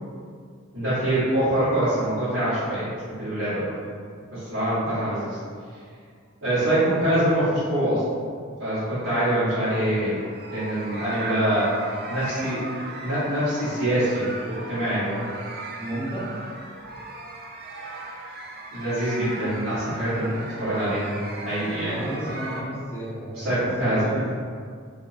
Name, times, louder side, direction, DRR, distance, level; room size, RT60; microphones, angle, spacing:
voice 1, 0.7-3.7 4.3-5.4 6.4-8.0 8.6-10.2 10.5-11.7 12.1-12.6 13.0-15.2 18.7-22.0 23.4-24.0, right 1 dB, 75° right, -16 dB, 1.5 m, -24 dB
sound 1, 9.7-22.6, right 2 dB, 45° right, 0.4 m, -37 dB
voice 2, 15.8-16.3 21.8-24.3, right 1 dB, 10° left, -8 dB, 0.7 m, -32 dB
2.9 x 2.8 x 2.7 m, 2.1 s
head